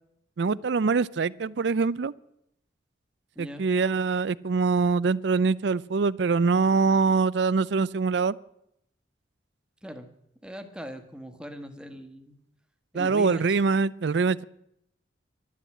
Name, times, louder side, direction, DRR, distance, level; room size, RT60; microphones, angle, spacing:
voice 1, 0.4-2.1 3.4-8.4 12.9-14.4, right 4 dB, 65° right, 20 dB, 0.5 m, -24 dB
voice 2, 10.4-12.4 12.9-13.4, equal, 5° right, 7 dB, 1.3 m, -39 dB
12.0 x 11.5 x 8.4 m, 0.78 s
head